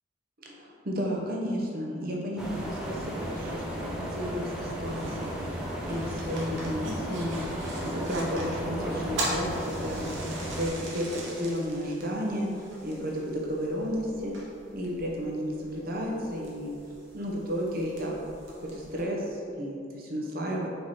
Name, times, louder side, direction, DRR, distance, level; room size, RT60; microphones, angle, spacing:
voice 1, 0.4-5.3 5.8-7.4 7.8-12.5 12.8-14.3 14.7-16.7 17.1-18.1 18.6-20.7, equal, 50° right, -2 dB, 0.9 m, -33 dB
sound 1, 2.4-10.7, equal, 5° right, 0.7 m, -34 dB
sound 2, 4.8-19.0, right 1 dB, 75° right, 1.1 m, -41 dB
4.8 x 4.6 x 4.3 m, 2.6 s
head